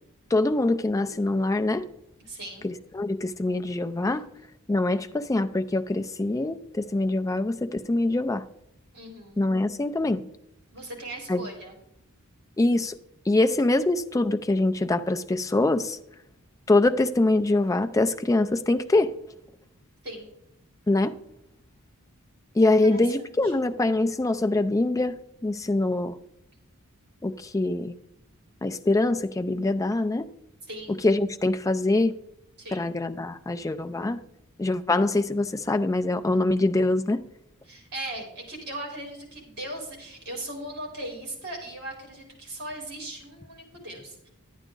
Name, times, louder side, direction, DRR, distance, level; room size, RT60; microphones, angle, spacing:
voice 1, 0.3-1.8 2.6-4.2 4.7-8.4 9.4-10.2 11.3-11.5 12.6-13.0 13.3-16.0 16.7-19.1 20.9-21.1 22.6-25.2 25.4-26.2 27.2-27.9 28.6-30.3 30.9-32.1 32.7-34.2 34.6-37.2, left 2 dB, 15° left, 0.4 m, -24 dB
voice 2, 2.2-2.7 8.9-9.4 10.7-11.7 20.0-20.3 22.8-23.5 30.7-31.0 32.6-32.9 37.7-44.3, right 1 dB, 50° right, 3.9 m, -38 dB
11.5 x 9.1 x 3.8 m
head